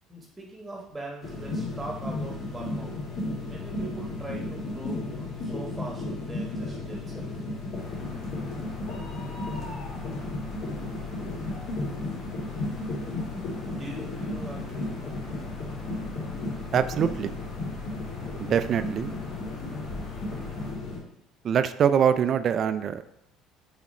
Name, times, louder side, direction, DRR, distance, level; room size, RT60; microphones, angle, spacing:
voice 1, 0.1-3.0 3.4-7.3 13.8-15.1, right 2 dB, 10° right, -1 dB, 1.3 m, -41 dB
sound 1, 1.2-21.0, left 2 dB, 45° left, 1.8 m, -34 dB
sound 2, 7.7-20.7, left 2 dB, 70° left, 1.7 m, -44 dB
voice 2, 16.7-17.3 18.4-19.2 21.4-23.0, right 8 dB, 45° right, 12 dB, 0.4 m, -24 dB
6.1 x 4.2 x 4.2 m, 0.77 s
cardioid pair, 120°, 0 cm